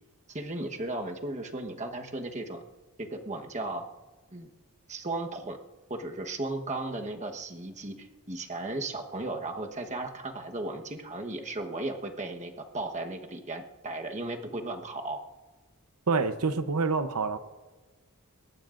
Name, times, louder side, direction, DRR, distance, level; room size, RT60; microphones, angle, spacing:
voice 1, 0.3-2.6 3.0-3.9 4.3-4.5 4.9-5.6 5.9-15.2, right 2 dB, 30° right, 3 dB, 1.2 m, -35 dB
voice 2, 16.1-17.4, right 4 dB, 90° right, 10 dB, 0.8 m, -27 dB
23.0 x 18.5 x 2.5 m, 1.3 s
head